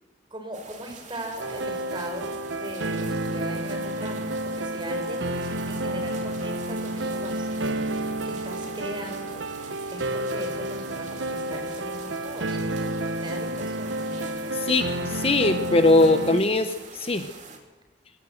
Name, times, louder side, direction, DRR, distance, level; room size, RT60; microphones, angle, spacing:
voice 1, 0.3-9.5 9.9-14.7, right 1 dB, 25° right, 5 dB, 4.8 m, -39 dB
sound 1, 0.5-17.6, right 5 dB, 40° right, 3.2 m, -45 dB
sound 2, 1.4-16.4, right 1 dB, 75° right, 1.0 m, -30 dB
voice 2, 14.5-17.3, left 2 dB, 30° left, 9 dB, 0.9 m, -21 dB
24.5 x 17.5 x 7.9 m, 1.2 s
head